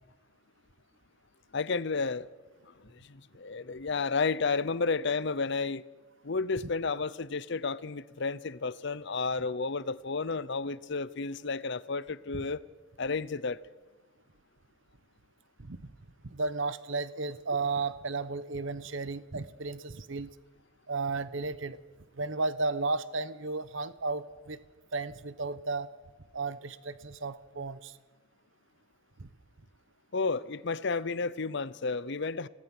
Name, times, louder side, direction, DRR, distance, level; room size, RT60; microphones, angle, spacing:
voice 1, 1.5-2.3 2.7-5.8 6.2-12.6 13.0-13.6 30.1-32.5, left 4 dB, 55° left, 0.7 m, -32 dB
voice 2, 15.6-15.9 16.2-20.3 20.9-21.8 22.2-24.6 24.9-25.9 26.3-28.0 29.2-29.3, right 3 dB, 60° right, 0.9 m, -34 dB
28.5 x 18.0 x 6.1 m
head